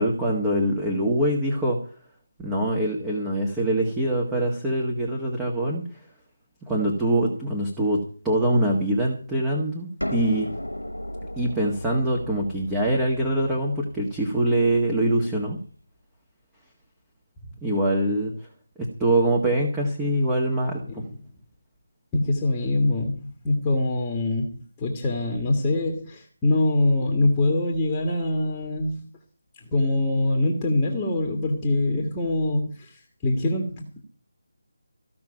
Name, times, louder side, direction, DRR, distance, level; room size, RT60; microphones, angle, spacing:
voice 1, 0.0-1.8 2.4-5.8 6.7-10.5 11.4-15.6 17.6-18.3 18.8-21.0, right 1 dB, 10° right, -2 dB, 1.8 m, -24 dB
sound 1, 10.0-15.6, left 1 dB, 90° left, 1.5 m, -36 dB
voice 2, 20.9-21.2 22.1-29.1 29.6-34.0, left 2 dB, 15° left, 1 dB, 1.8 m, -24 dB
15.5 x 6.0 x 9.0 m, 0.44 s
figure-of-eight pair, 155°, 0 cm